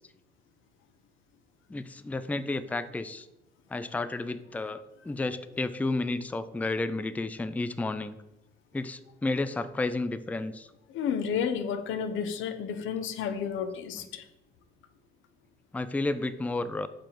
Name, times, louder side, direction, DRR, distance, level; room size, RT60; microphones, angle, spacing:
voice 1, 1.7-3.3 3.7-8.2 8.7-10.7 14.0-14.1 15.7-16.9, left 2 dB, 5° left, 12 dB, 0.4 m, -32 dB
voice 2, 10.9-14.3, left 7 dB, 85° left, 10 dB, 0.7 m, -31 dB
5.7 x 5.2 x 4.5 m, 0.91 s
cardioid pair, 90°, 20 cm